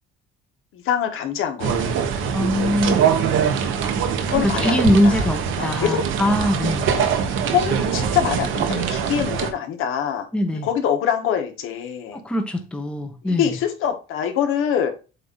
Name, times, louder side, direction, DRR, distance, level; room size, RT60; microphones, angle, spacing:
voice 1, 0.7-1.9 4.2-5.3 5.6-6.0 6.9-7.0 7.4-12.2 13.2-14.9, left 9 dB, 75° left, 1.5 m, -24 dB
sound 1, 1.6-9.5, right 7 dB, 70° right, 1.1 m, -23 dB
voice 2, 2.3-3.0 3.8-3.9 4.3-6.9 10.3-10.7 12.1-13.5, left 1 dB, 5° left, 0.8 m, -22 dB
7.9 x 2.7 x 5.5 m
cardioid pair, 160°, 21 cm